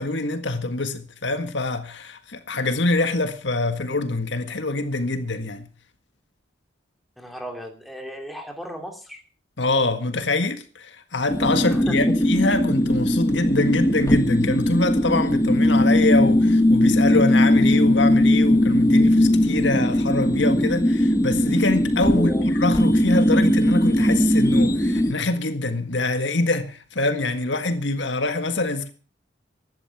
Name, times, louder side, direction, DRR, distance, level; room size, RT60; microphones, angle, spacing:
voice 1, 0.0-5.7 9.6-28.9, left 2 dB, 70° left, 1.7 m, -24 dB
voice 2, 7.2-9.2 11.6-12.1 22.1-22.5, equal, ahead, 2.8 m, -35 dB
sound 1, 11.3-25.1, left 1 dB, 15° left, 1.0 m, -19 dB
16.0 x 11.5 x 5.9 m
head